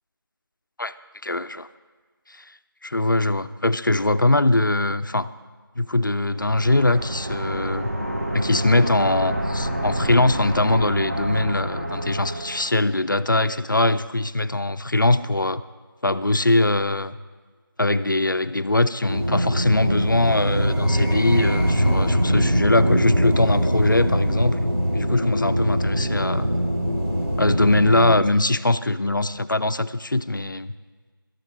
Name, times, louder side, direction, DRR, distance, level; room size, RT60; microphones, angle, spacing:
voice 1, 1.2-1.7 2.3-2.4 2.8-5.3 5.8-7.9 8.3-15.6 16.0-17.2 17.8-26.5 27.4-30.7, left 2 dB, 55° left, 13 dB, 0.5 m, -22 dB
sound 1, 6.3-12.8, right 1 dB, 35° right, 1.4 m, -28 dB
sound 2, 19.1-28.1, equal, 75° right, 3.4 m, -22 dB
17.0 x 13.0 x 3.3 m, 1.4 s
figure-of-eight pair, 170°, 12 cm